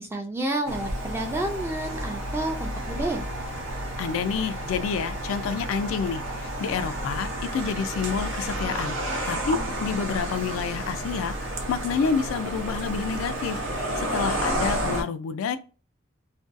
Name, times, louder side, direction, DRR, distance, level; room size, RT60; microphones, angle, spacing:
voice 1, 0.0-3.2 14.4-14.7, right 1 dB, 10° right, 0.3 m, -30 dB
sound 1, 0.6-15.0, right 1 dB, 85° right, 0.7 m, -31 dB
voice 2, 4.0-9.0 9.3-15.6, left 6 dB, 90° left, 0.3 m, -29 dB
2.6 x 2.2 x 2.4 m
head